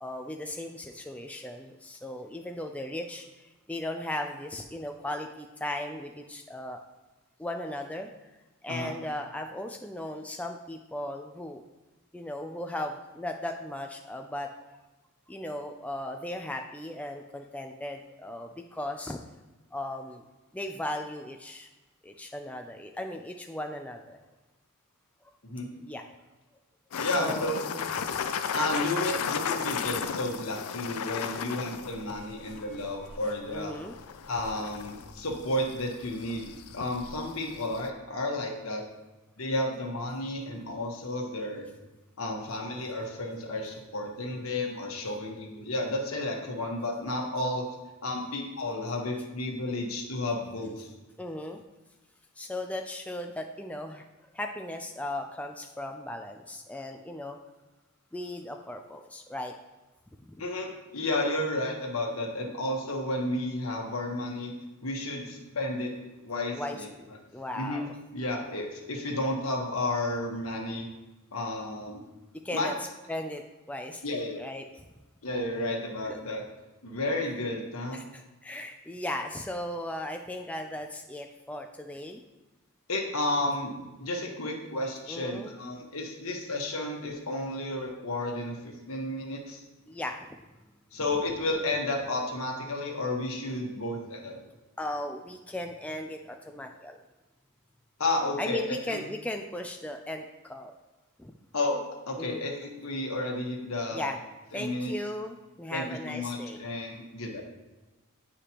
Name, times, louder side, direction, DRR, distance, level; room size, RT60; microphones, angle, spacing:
voice 1, 0.0-6.8 7.4-8.1 8.6-11.6 12.1-14.5 15.3-19.2 19.7-20.2 20.5-21.7 22.0-24.2 25.8-26.0 26.9-27.8 28.1-28.2 32.7-32.8 33.5-33.9 51.2-51.6 52.4-54.0 54.3-57.4 58.1-59.5 66.5-66.8 67.3-67.9 72.4-72.7 73.1-73.4 73.7-74.0 74.4-74.9 76.0-76.2 77.9-82.2 85.1-85.5 89.9-90.3 94.8-97.0 98.4-100.7 101.2-101.3 102.2-102.4 103.9-104.2 104.5-106.6, left 1 dB, 5° left, 4 dB, 0.3 m, -37 dB
sound 1, 26.9-37.9, left 7 dB, 85° left, 0.5 m, -35 dB
voice 2, 26.9-27.6 28.5-33.7 34.3-38.8 39.4-41.7 42.2-50.9 60.4-64.5 64.8-65.9 66.2-66.9 67.5-67.8 68.1-70.9 71.3-72.0 72.5-72.7 74.0-74.4 75.2-76.4 76.8-78.0 82.9-89.6 90.9-94.4 98.0-99.0 101.5-101.8 102.1-104.1 104.5-104.9 105.7-107.4, left 1 dB, 70° left, 1 dB, 1.3 m, -32 dB
9.8 x 5.0 x 2.9 m, 1.1 s
head